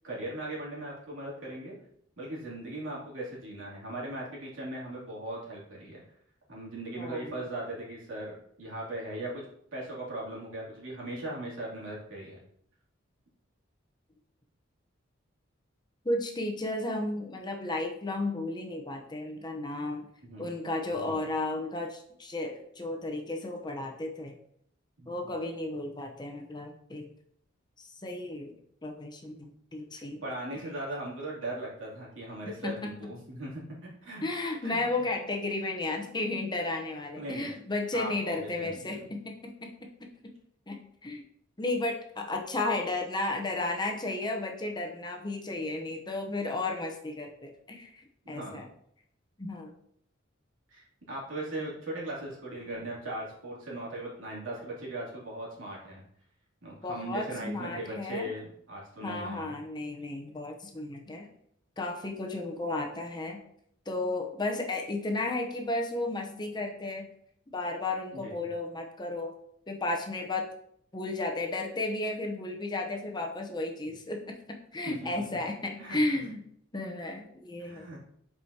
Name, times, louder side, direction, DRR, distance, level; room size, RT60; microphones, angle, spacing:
voice 1, 0.0-1.7 2.2-6.0 6.5-9.5 9.7-12.4 20.2-20.5 20.9-21.2 25.0-25.1 30.2-34.3 34.6-34.8 37.2-37.5 37.9-38.9 48.2-48.6 50.7-56.0 56.6-59.5 68.1-68.5 74.8-75.1 75.8-76.2 77.6-78.0, right 1 dB, 85° right, -5 dB, 2.7 m, -39 dB
voice 2, 7.0-7.4 16.0-20.1 20.4-24.4 25.1-27.1 27.8-28.5 28.8-30.2 32.5-33.1 34.2-39.7 40.7-41.2 41.6-48.7 49.4-49.7 56.8-58.3 59.0-61.3 61.8-63.4 63.9-67.1 67.5-69.3 69.7-70.5 70.9-74.3 74.7-76.4 76.7-77.9, left 2 dB, 20° left, 2 dB, 0.7 m, -33 dB
7.5 x 4.9 x 2.8 m, 0.68 s
head